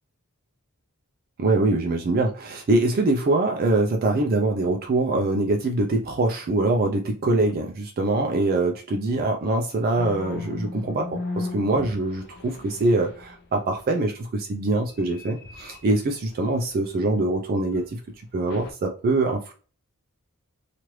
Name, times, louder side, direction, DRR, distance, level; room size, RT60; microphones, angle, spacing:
voice 1, 1.4-18.0 18.3-19.5, right 2 dB, 45° right, 2 dB, 0.4 m, -23 dB
sound 1, 10.0-13.5 14.8-17.1 17.7-17.9 18.5-18.7, left 3 dB, 50° left, 0.5 m, -37 dB
3.0 x 2.4 x 3.0 m, 0.39 s
head